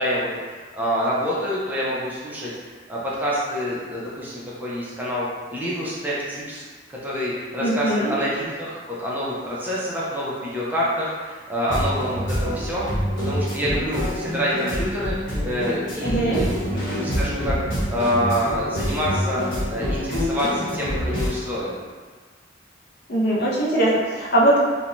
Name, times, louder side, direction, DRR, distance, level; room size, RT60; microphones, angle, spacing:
voice 1, 0.0-2.5 2.9-6.6 6.9-12.9 13.2-15.2 15.4-17.6 17.9-19.4 19.7-21.8, equal, 10° right, -7 dB, 0.5 m, -27 dB
voice 2, 7.6-8.1 16.0-16.4 23.1-24.6, right 1 dB, 55° left, -5 dB, 0.6 m, -20 dB
sound 1, 11.7-21.3, equal, 85° left, 1.0 m, -26 dB
2.6 x 2.1 x 2.9 m, 1.4 s
head